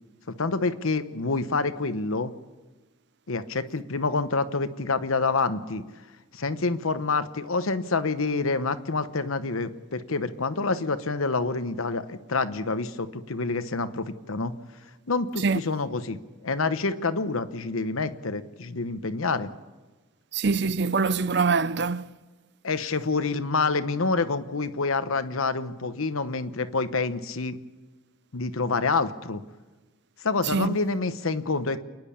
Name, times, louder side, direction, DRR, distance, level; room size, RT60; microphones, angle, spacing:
voice 1, 0.4-2.3 3.3-5.8 6.3-14.5 15.1-16.2 16.4-19.5 22.6-27.6 28.3-29.4 30.2-31.8, left 3 dB, 80° left, 1.0 m, -27 dB
voice 2, 20.3-22.1 30.5-30.7, right 4 dB, 55° right, 0.5 m, -24 dB
28.0 x 10.5 x 8.6 m
head